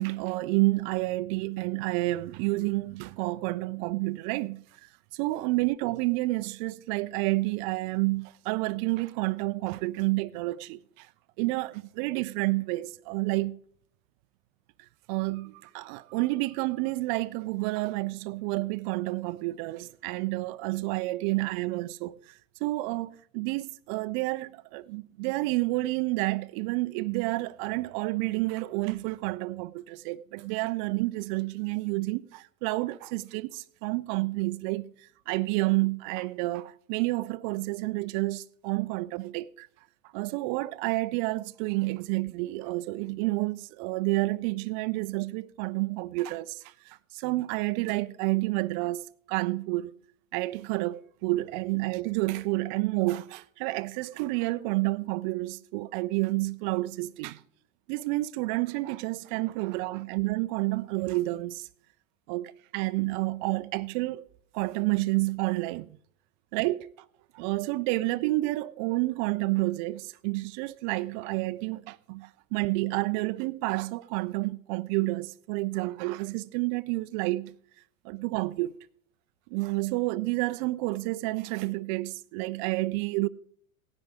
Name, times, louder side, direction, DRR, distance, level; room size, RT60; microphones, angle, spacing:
voice 1, 0.0-4.6 5.1-11.1 11.4-13.6 15.1-22.2 22.6-34.9 35.3-39.7 40.1-46.6 46.9-49.0 49.3-49.9 50.3-57.4 57.9-61.7 62.3-64.2 64.5-65.9 66.5-66.9 67.3-77.5 78.0-78.7 79.5-83.3, right 21 dB, 35° right, 0.5 m, -29 dB
17.5 x 10.0 x 3.6 m
figure-of-eight pair, 95°, 44 cm